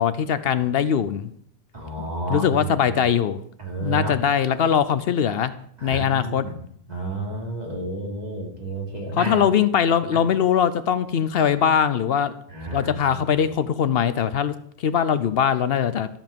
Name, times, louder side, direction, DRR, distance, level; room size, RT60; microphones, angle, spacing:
voice 1, 0.0-1.3 2.0-3.4 3.8-5.5 5.8-6.5 9.1-12.3 12.7-16.1, left 8 dB, 70° left, 13 dB, 0.8 m, -21 dB
voice 2, 1.7-3.0 3.6-4.2 5.8-6.5 6.9-9.5 10.1-10.2 12.5-13.2, right 2 dB, 40° right, -2 dB, 3.0 m, -31 dB
13.5 x 7.3 x 5.3 m, 0.67 s
omnidirectional pair, 1.1 m